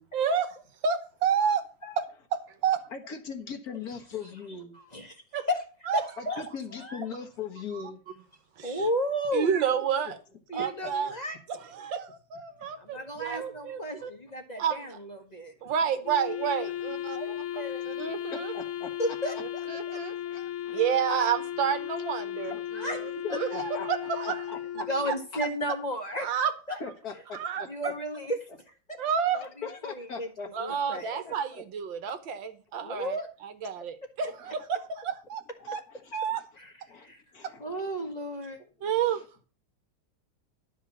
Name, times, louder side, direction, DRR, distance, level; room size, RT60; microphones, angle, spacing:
voice 1, 0.1-0.6 0.8-1.6 2.0-2.1 2.6-2.8 5.3-5.4 5.9-6.0 7.7-7.8 8.6-8.8 9.3-10.2 10.5-11.1 11.7-14.1 14.6-15.0 15.6-17.2 17.9-18.5 19.4-20.2 20.7-24.4 26.2-26.5 27.3-27.6 29.0-29.4 30.5-33.2 33.4-35.4 35.7-35.8 36.1-36.4 38.8-39.2, right 7 dB, 80° right, 1.9 m, -29 dB
voice 2, 2.9-4.8 6.2-8.0 10.6-10.9 12.6-12.8 18.3-18.9 19.9-20.8 22.4-22.6 23.2-23.9 24.2-24.9 26.8-27.7 29.4-31.6 35.6-36.4 36.9-37.7, left 5 dB, 55° left, 1.8 m, -40 dB
voice 3, 4.7-5.6 5.9-7.0 8.6-9.6 10.5-11.4 12.8-15.5 17.1-17.8 19.0-19.3 19.9-20.5 22.7-23.1 24.9-26.3 26.7-26.8 27.7-28.4 28.7-29.0 29.3-30.3 30.6-31.2 32.8-33.3 36.6-37.2 37.6-38.7, equal, 25° left, 1.4 m, -34 dB
Wind instrument woodwind instrument, 16.0-25.3, left 11 dB, 75° left, 0.6 m, -36 dB
11.5 x 5.1 x 7.0 m
omnidirectional pair, 2.0 m